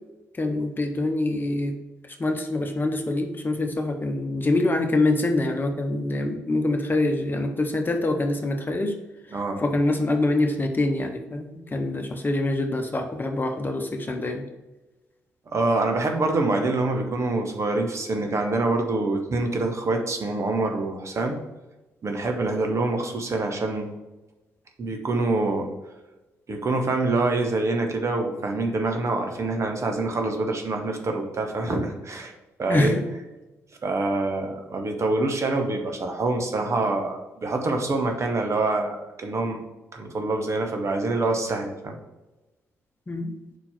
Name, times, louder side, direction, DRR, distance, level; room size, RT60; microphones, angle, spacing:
voice 1, 0.4-1.8 2.1-9.0 9.6-14.4 32.7-33.1 43.1-43.3, left 2 dB, 25° left, 5 dB, 1.1 m, -25 dB
voice 2, 15.5-21.4 22.0-23.9 24.8-25.7 26.5-32.3 32.6-32.9 33.8-39.6 39.9-42.0, right 2 dB, 40° right, 3 dB, 1.3 m, -25 dB
5.2 x 4.4 x 5.9 m, 1.1 s
hypercardioid pair, 40°, 7 cm